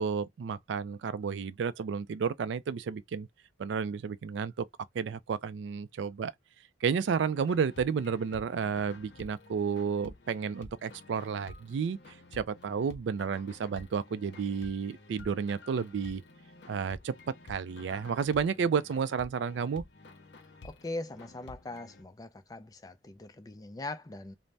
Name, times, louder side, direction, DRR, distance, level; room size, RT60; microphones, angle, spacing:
voice 1, 0.0-3.3 3.6-4.6 4.9-6.3 6.8-16.2 16.7-17.1 17.5-19.8, right 6 dB, 75° right, 0.3 m, -31 dB
sound 1, 7.3-22.0, left 2 dB, 65° left, 0.7 m, -51 dB
voice 2, 20.6-24.4, left 2 dB, 20° left, 0.3 m, -41 dB
2.6 x 2.0 x 3.2 m
head